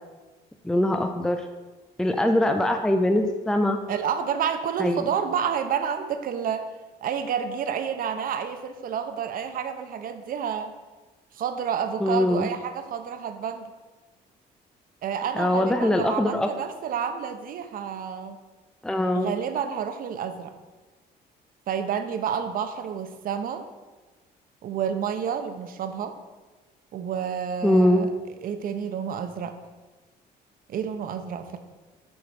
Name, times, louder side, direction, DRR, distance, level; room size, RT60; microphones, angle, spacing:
voice 1, 0.6-1.4 2.0-3.8 4.8-5.1 12.0-12.5 15.4-16.5 18.8-19.3 27.6-28.1, left 1 dB, 5° left, 6 dB, 0.5 m, -22 dB
voice 2, 3.9-6.7 7.0-10.7 11.3-13.7 15.0-18.4 19.1-20.5 21.7-23.6 24.6-26.1 26.9-28.1 28.4-29.6 30.7-31.6, right 7 dB, 55° right, 8 dB, 0.9 m, -29 dB
7.2 x 4.9 x 6.0 m, 1.2 s
cardioid pair, 110°, 17 cm